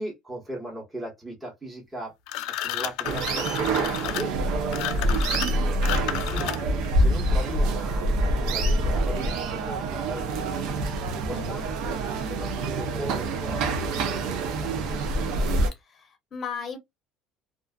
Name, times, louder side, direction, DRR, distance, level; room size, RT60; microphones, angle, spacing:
voice 1, 0.0-2.2 2.5-5.9 6.3-6.7 6.9-10.7 11.1-12.0 12.3-15.0, right 1 dB, 15° right, 1.1 m, -39 dB
sound 1, 2.3-6.9, left 13 dB, 75° left, 0.3 m, -32 dB
sound 2, 3.0-15.7, right 2 dB, 70° right, 0.5 m, -26 dB
voice 2, 11.3-11.6 15.9-16.8, left 6 dB, 35° left, 0.7 m, -36 dB
2.4 x 2.4 x 2.2 m
cardioid pair, 135°, 0 cm